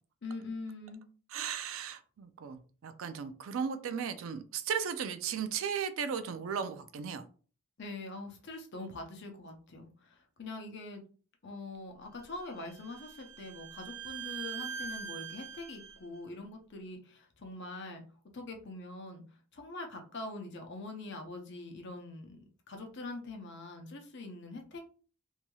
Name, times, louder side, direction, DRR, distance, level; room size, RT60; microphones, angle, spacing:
voice 1, 0.2-1.0 7.8-11.0 11.4-18.0 18.3-19.2 19.5-22.4 22.7-24.8, left 2 dB, 50° left, 0.6 m, -43 dB
voice 2, 1.3-7.2, right 7 dB, 65° right, 0.3 m, -36 dB
Bowed string instrument, 12.2-16.0, right 8 dB, 15° right, 0.6 m, -43 dB
3.0 x 2.7 x 2.2 m
head